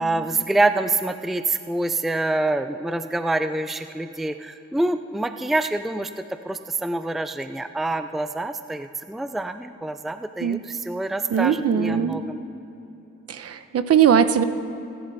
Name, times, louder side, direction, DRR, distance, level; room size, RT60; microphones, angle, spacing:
voice 1, 0.0-6.1 6.4-12.4, right 2 dB, ahead, 10 dB, 0.5 m, -26 dB
voice 2, 11.3-12.2 13.3-14.4, right 8 dB, 55° right, 10 dB, 1.1 m, -20 dB
28.5 x 11.5 x 4.2 m, 2.9 s
cardioid pair, 90°, 30 cm